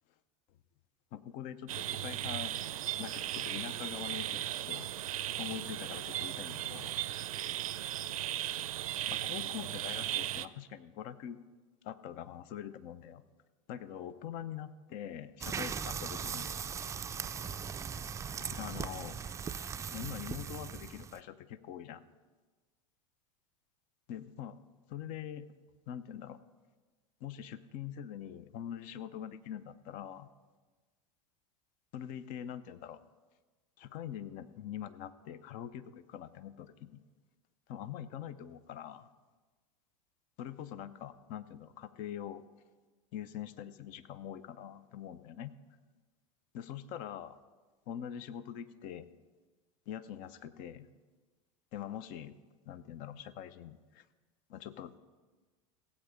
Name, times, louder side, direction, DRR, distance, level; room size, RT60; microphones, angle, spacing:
voice 1, 1.1-2.5 3.0-4.9 5.4-6.9 9.1-11.4 11.8-13.2 13.7-16.5 18.4-19.2 19.9-22.0 24.1-24.6 24.9-25.5 25.9-26.4 27.2-30.3 31.9-33.0 33.8-37.0 37.7-39.1 40.4-42.4 43.1-45.5 46.5-47.4 47.9-49.1 49.9-50.9 51.7-52.4 52.7-54.1 54.5-55.0, left 10 dB, 50° left, 15 dB, 0.7 m, -44 dB
sound 1, 1.7-10.5, right 12 dB, 80° right, 0.5 m, -37 dB
sound 2, 15.4-21.2, right 6 dB, 15° right, 0.4 m, -39 dB
16.5 x 8.4 x 5.1 m, 1.3 s
hypercardioid pair, 95°, 18 cm